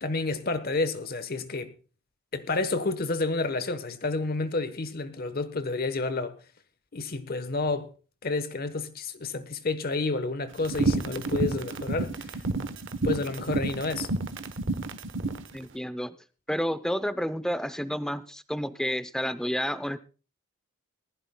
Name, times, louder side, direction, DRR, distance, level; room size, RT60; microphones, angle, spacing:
voice 1, 0.0-1.7 2.3-6.3 6.9-7.9 8.2-12.4 13.0-14.1, left 3 dB, 45° left, 1.0 m, -30 dB
sound 1, 10.6-15.4, right 3 dB, 55° right, 1.0 m, -29 dB
voice 2, 15.5-16.2 16.5-20.0, equal, 5° left, 0.5 m, -30 dB
20.5 x 14.5 x 2.2 m
head